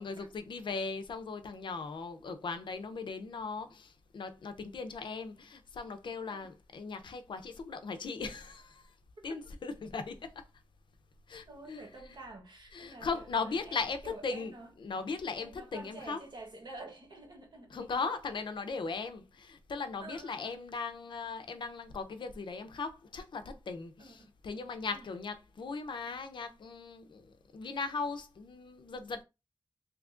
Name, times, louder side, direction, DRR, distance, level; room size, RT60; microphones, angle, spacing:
voice 1, 0.0-9.0 9.2-10.4 11.3-11.8 12.1-12.2 12.7-14.5 14.8-16.2 17.7-29.2, left 4 dB, 90° left, 0.5 m, -38 dB
voice 2, 11.5-14.7 15.4-18.1 20.0-20.6 24.0-24.3 24.9-25.1, right 2 dB, 70° right, 1.0 m, -49 dB
2.8 x 2.5 x 3.6 m
wide cardioid pair, 125°, 8 cm